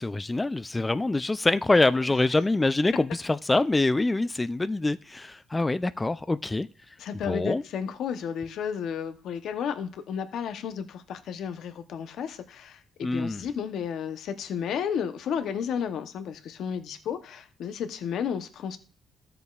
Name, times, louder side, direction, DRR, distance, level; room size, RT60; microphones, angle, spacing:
voice 1, 0.0-6.7 7.3-7.6 13.0-13.4, left 2 dB, 20° left, 0.4 m, -25 dB
voice 2, 7.0-18.8, left 7 dB, 75° left, 0.8 m, -32 dB
13.0 x 6.8 x 2.4 m
cardioid pair, 90°, 0 cm